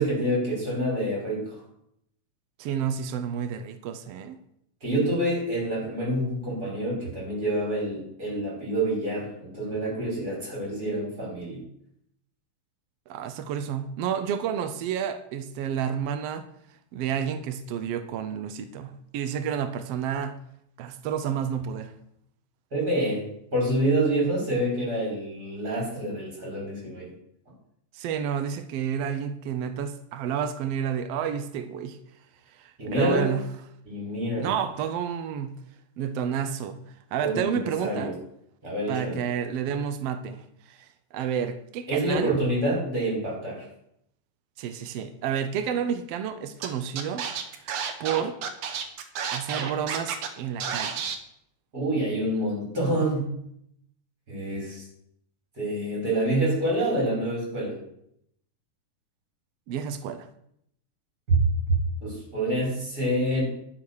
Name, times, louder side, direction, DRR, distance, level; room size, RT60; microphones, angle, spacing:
voice 1, 0.0-1.6 4.8-11.6 22.7-23.2 23.5-27.1 32.8-33.3 33.8-34.5 37.2-38.1 38.6-39.2 41.9-43.6 51.7-53.3 54.3-54.9 55.6-57.8 61.3-61.4 62.0-63.4, right 1 dB, 25° right, 6.2 m, -27 dB
voice 2, 2.6-4.4 13.1-16.5 16.9-20.4 20.8-21.9 27.9-32.0 32.5-33.4 34.4-35.5 36.0-36.8 37.1-38.1 38.9-40.4 40.7-42.3 44.6-47.3 47.6-47.7 48.0-48.4 49.3-50.9 59.7-60.3, right 8 dB, 90° right, 1.3 m, -30 dB
Scratching (performance technique), 46.6-46.7 47.0-50.3 50.6-51.2, right 7 dB, 60° right, 2.0 m, -31 dB
11.0 x 7.2 x 6.4 m
omnidirectional pair, 3.8 m